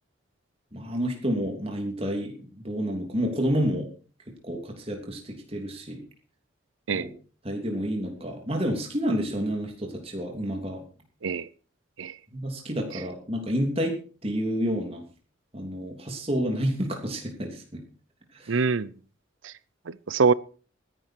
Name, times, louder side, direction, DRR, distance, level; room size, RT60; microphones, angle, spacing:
voice 1, 0.7-3.9 4.4-6.0 6.9-7.1 7.4-10.8 12.3-15.0 15.5-17.8 18.3-18.6, equal, 30° right, 3.1 m, -29 dB
voice 2, 18.5-18.9 19.4-19.5 19.9-20.3, right 5 dB, 80° right, 0.6 m, -24 dB
19.0 x 11.0 x 4.6 m
head